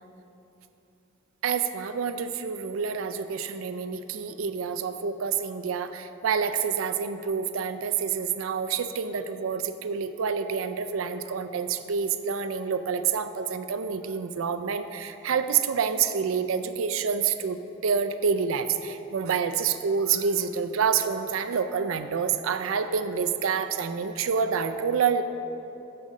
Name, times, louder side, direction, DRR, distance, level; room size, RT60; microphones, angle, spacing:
voice 1, 1.4-25.2, right 6 dB, 85° right, 10 dB, 0.4 m, -28 dB
7.6 x 4.8 x 6.4 m, 2.9 s
head